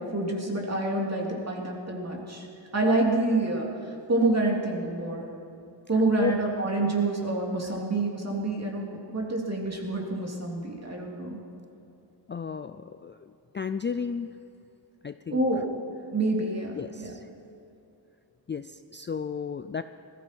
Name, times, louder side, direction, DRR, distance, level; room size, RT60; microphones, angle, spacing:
voice 1, 0.0-2.5 2.7-5.3 5.9-11.4 15.3-15.6 16.1-17.1, right 2 dB, 35° right, -1 dB, 3.0 m, -27 dB
voice 2, 12.3-14.4 15.0-15.4 16.8-17.3 18.5-19.8, left 6 dB, 25° left, 10 dB, 0.4 m, -33 dB
20.5 x 14.5 x 4.6 m, 2.8 s
wide cardioid pair, 85°, 45 cm